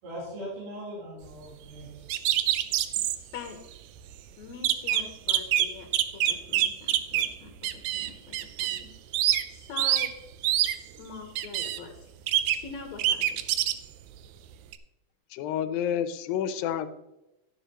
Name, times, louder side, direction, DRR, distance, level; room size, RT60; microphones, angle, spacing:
voice 1, 0.0-2.1, equal, 70° right, -6 dB, 5.3 m, -40 dB
sound 1, 2.1-3.2 3.8-3.9 4.1-4.2 4.6-7.4 7.6-8.9 9.1-9.4 9.8-10.1 10.4-10.8 11.4-11.8 12.3-12.7 13.0-13.7 14.7-14.8, right 12 dB, 85° right, 1.6 m, -25 dB
voice 2, 4.4-5.9 6.1-8.9 9.5-10.1 11.0-12.1 12.5-13.8, left 5 dB, 65° left, 4 dB, 2.0 m, -44 dB
voice 3, 15.3-16.9, left 9 dB, 85° left, 11 dB, 2.4 m, -29 dB
11.5 x 11.0 x 3.0 m, 0.95 s
omnidirectional pair, 4.1 m